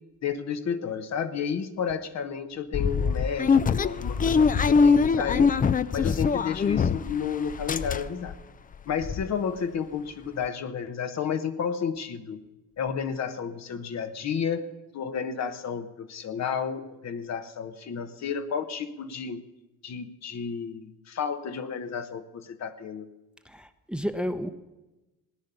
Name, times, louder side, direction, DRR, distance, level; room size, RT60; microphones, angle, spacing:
voice 1, 0.2-5.5 5.9-8.4 8.9-12.4 12.8-14.7 14.9-19.4 19.8-23.1, left 7 dB, 60° left, 1.2 m, -31 dB
sound 1, 2.7-7.2 7.5-8.3 8.7-8.8 9.0-9.2, left 5 dB, 30° left, 0.5 m, -23 dB
voice 2, 23.5-24.5, equal, 5° right, 0.8 m, -31 dB
17.5 x 9.9 x 6.9 m
cardioid pair, 90°, 30 cm